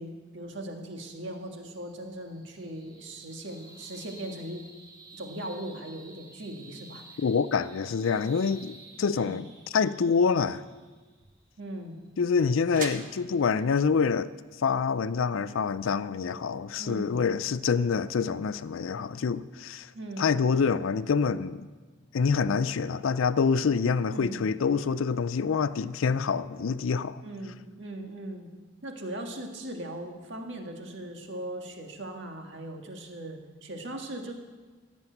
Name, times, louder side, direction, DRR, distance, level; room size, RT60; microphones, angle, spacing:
voice 1, 0.0-4.7 5.1-7.0 9.2-9.3 11.6-12.0 16.8-17.2 19.9-20.4 24.1-24.5 27.2-28.5 28.8-34.3, right 1 dB, 60° right, 1.8 m, -39 dB
sound 1, 1.3-13.6, right 2 dB, 20° right, 2.3 m, -53 dB
voice 2, 7.2-10.6 12.2-14.3 14.6-19.9 20.2-21.7 22.1-27.2, left 5 dB, 70° left, 0.4 m, -26 dB
sound 2, 10.1-16.0, right 5 dB, 40° right, 1.2 m, -46 dB
16.5 x 7.3 x 7.9 m
head